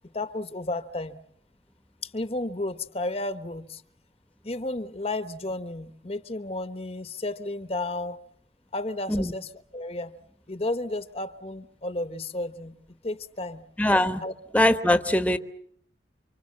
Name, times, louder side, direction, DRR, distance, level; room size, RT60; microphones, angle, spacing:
voice 1, 0.1-1.1 2.0-3.8 4.4-8.2 8.7-10.1 10.5-13.6 14.2-14.3, left 2 dB, 35° left, 1.1 m, -32 dB
voice 2, 13.8-14.2 14.5-15.4, left 1 dB, 10° left, 1.1 m, -21 dB
28.5 x 25.5 x 7.5 m
head